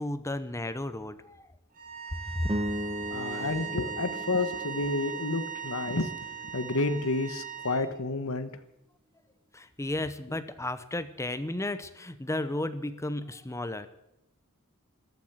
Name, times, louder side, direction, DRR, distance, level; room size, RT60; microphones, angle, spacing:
voice 1, 0.0-1.4 2.4-2.5 3.1-3.5 9.5-13.9, left 1 dB, 15° left, 12 dB, 0.9 m, -34 dB
sound 1, 1.7-7.8, right 8 dB, 40° right, 3.8 m, -39 dB
sound 2, 2.4-7.0, equal, 20° right, 1.0 m, -38 dB
voice 2, 3.1-8.5, left 2 dB, 65° left, 10 dB, 1.4 m, -30 dB
14.0 x 12.5 x 8.1 m, 0.83 s
head